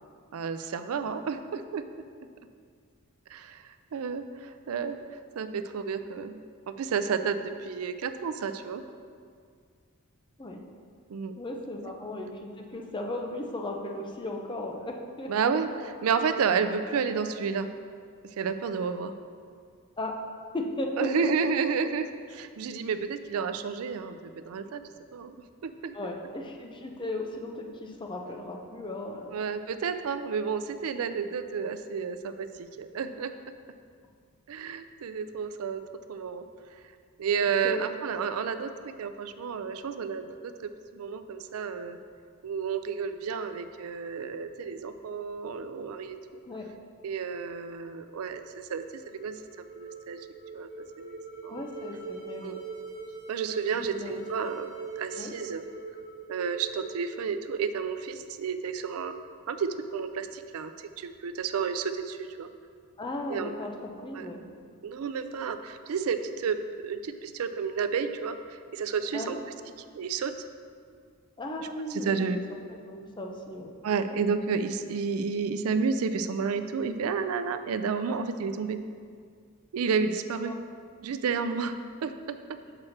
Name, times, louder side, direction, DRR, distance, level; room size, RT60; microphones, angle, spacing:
voice 1, 0.3-1.8 3.3-5.0 5.4-6.4 6.7-8.8 11.1-11.3 15.3-15.7 16.0-17.7 18.4-19.1 21.0-24.8 25.1-25.3 25.6-25.9 29.3-33.3 34.5-35.8 36.1-36.4 37.2-42.0 42.4-46.2 47.0-48.8 49.2-49.4 49.8-50.2 50.5-50.7 51.0-51.6 52.4-52.6 53.3-55.6 56.3-59.1 59.5-62.5 63.3-63.5 64.1-64.3 64.8-69.4 69.9-70.3 71.6-72.4 73.8-78.8 79.7-80.5 81.0-81.8 82.0-82.6, right 5 dB, 80° right, 10 dB, 0.4 m, -31 dB
voice 2, 11.4-15.5 20.0-20.2 20.5-21.3 25.9-29.4 37.4-37.8 46.4-46.7 51.5-52.6 53.7-54.3 55.2-55.3 63.0-63.7 64.0-64.4 69.1-69.4 71.4-72.4 72.9-73.7 80.5-80.6, left 1 dB, 20° left, 1 dB, 0.6 m, -36 dB
sound 1, 48.6-57.8, right 4 dB, 45° right, 1.0 m, -42 dB
6.1 x 4.3 x 6.4 m, 2.2 s
head